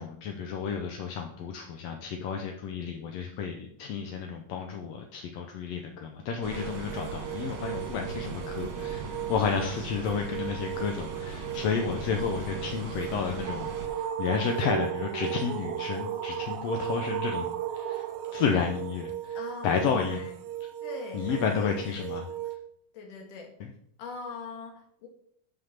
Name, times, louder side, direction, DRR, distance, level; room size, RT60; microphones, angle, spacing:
voice 1, 0.0-18.0 18.3-19.4 19.6-20.2 21.1-22.2, left 6 dB, 70° left, 3 dB, 1.7 m, -31 dB
sound 1, 6.4-13.9, right 3 dB, 45° right, 2.1 m, -39 dB
sound 2, 6.5-22.6, right 13 dB, 90° right, 1.3 m, -39 dB
sound 3, 13.0-19.1, right 9 dB, 75° right, 1.7 m, -35 dB
voice 2, 19.3-20.4 20.8-22.3 22.9-23.5 24.0-25.1, left 4 dB, 90° left, 1 dB, 3.3 m, -42 dB
7.6 x 5.6 x 7.2 m, 0.69 s
omnidirectional pair, 3.6 m